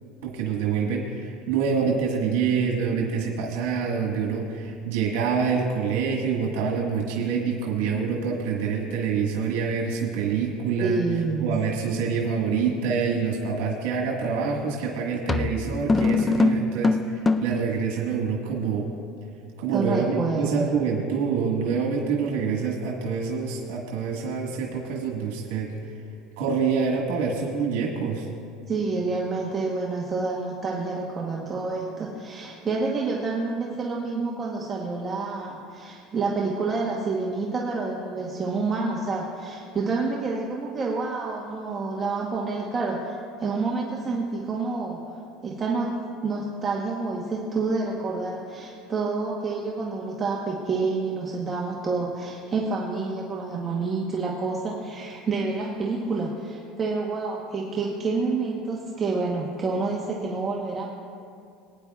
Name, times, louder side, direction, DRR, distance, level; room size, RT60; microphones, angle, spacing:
voice 1, 0.2-11.0 11.4-18.8 19.6-25.7 26.4-28.3, right 6 dB, 90° right, -2 dB, 1.6 m, -26 dB
voice 2, 10.8-11.5 19.7-20.7 28.7-45.0 45.4-45.9 46.2-60.9, right 3 dB, 25° right, -3 dB, 1.0 m, -28 dB
sound 1, 14.4-14.6 15.3-17.7, left 3 dB, 15° left, 0.3 m, -23 dB
20.5 x 9.7 x 2.4 m, 2.4 s
cardioid pair, 140°, 0 cm